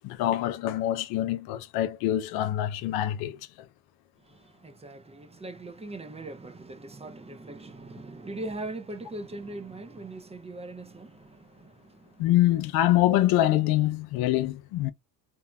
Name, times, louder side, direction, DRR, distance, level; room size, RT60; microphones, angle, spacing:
voice 1, 0.0-3.4 12.2-14.9, left 13 dB, 80° left, 0.5 m, -25 dB
voice 2, 4.2-12.3, right 2 dB, 20° right, 0.4 m, -41 dB
3.1 x 2.1 x 2.2 m
cardioid pair, 85°, 36 cm